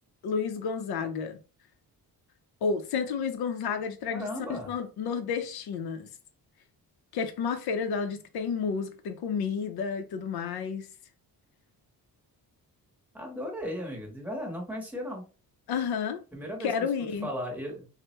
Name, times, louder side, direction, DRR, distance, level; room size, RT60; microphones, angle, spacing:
voice 1, 0.2-1.4 2.6-6.1 7.1-10.9 15.7-16.2 16.6-17.3, left 6 dB, 80° left, 0.6 m, -31 dB
voice 2, 4.1-4.7 13.1-15.2 16.3-16.9 17.2-17.9, equal, 5° right, 0.9 m, -36 dB
3.3 x 2.1 x 2.9 m
wide cardioid pair, 155°, 37 cm